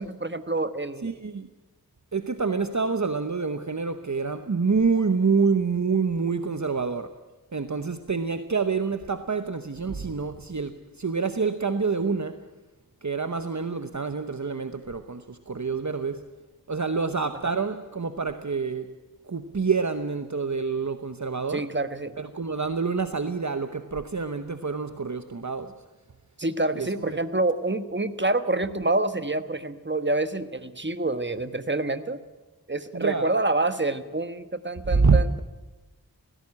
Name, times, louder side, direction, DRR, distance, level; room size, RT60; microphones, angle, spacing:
voice 1, 0.0-1.1 17.4-17.6 21.5-22.2 26.4-32.2 32.7-35.4, right 2 dB, 30° right, 11 dB, 1.3 m, -27 dB
voice 2, 1.0-1.5 2.1-7.1 7.5-12.4 13.0-16.3 16.7-19.0 19.2-21.7 22.2-25.7 26.8-27.2 32.9-33.3 34.9-35.2, right 4 dB, 50° right, 9 dB, 1.0 m, -27 dB
18.0 x 16.5 x 9.8 m, 1.2 s
wide cardioid pair, 45°, 37 cm